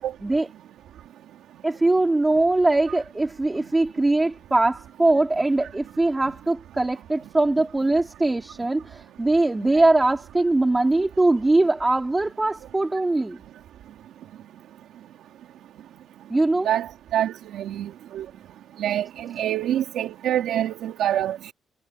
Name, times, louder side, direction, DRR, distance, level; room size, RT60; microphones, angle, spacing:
voice 1, 1.6-13.4 16.3-16.7, right 2 dB, 15° right, 3.8 m, -21 dB
voice 2, 16.6-18.2 18.8-21.5, right 11 dB, 80° right, 3.1 m, -26 dB
cardioid pair, 110°, 0 cm